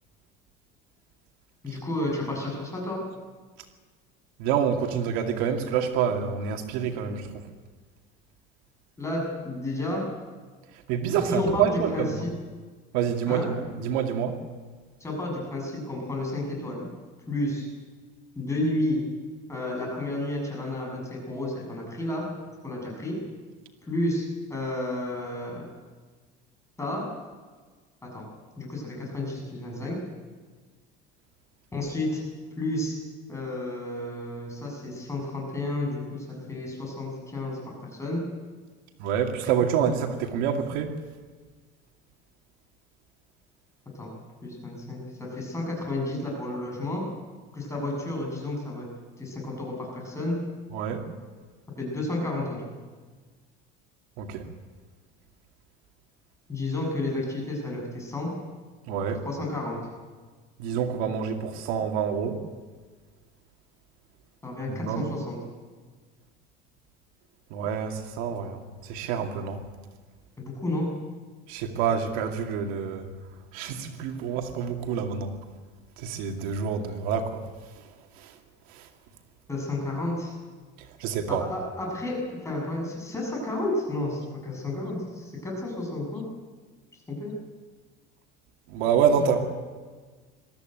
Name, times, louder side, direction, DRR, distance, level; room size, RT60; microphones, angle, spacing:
voice 1, 1.6-3.0 9.0-10.1 11.3-12.3 13.3-13.5 15.0-16.9 17.3-17.7 18.4-19.0 19.5-22.2 22.6-23.1 23.9-25.6 26.8-27.0 28.0-28.3 28.6-30.0 31.7-32.2 32.6-33.0 33.3-37.7 38.0-38.2 44.0-44.1 44.4-47.0 47.5-48.9 49.2-50.4 51.8-52.6 56.5-58.3 59.2-59.8 64.4-65.4 70.4-70.9 79.5-80.3 81.3-86.2 87.1-87.3 89.2-89.4, left 1 dB, 15° left, -1 dB, 7.2 m, -31 dB
voice 2, 4.4-7.4 10.9-12.2 12.9-14.4 39.0-40.9 50.7-51.0 54.2-54.5 58.9-59.2 60.6-62.4 64.7-65.1 67.5-69.6 71.5-73.1 73.5-75.3 76.0-77.4 78.2-78.3 78.7-78.9 81.0-81.4 88.7-89.4, right 7 dB, 80° right, 3 dB, 2.4 m, -27 dB
22.5 x 14.0 x 9.1 m, 1.4 s
cardioid pair, 150°, 21 cm